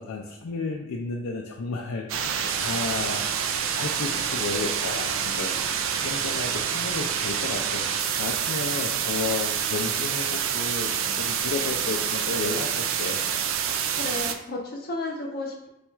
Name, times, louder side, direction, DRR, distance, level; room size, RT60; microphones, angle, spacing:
voice 1, 0.0-5.5 6.0-7.9 8.2-13.2, left 4 dB, 90° left, 0 dB, 0.4 m, -33 dB
sound 1, 2.1-14.3, right 8 dB, 70° right, 0.3 m, -27 dB
voice 2, 14.0-15.7, left 2 dB, 45° left, 0 dB, 0.7 m, -33 dB
4.2 x 2.3 x 4.4 m, 0.86 s
head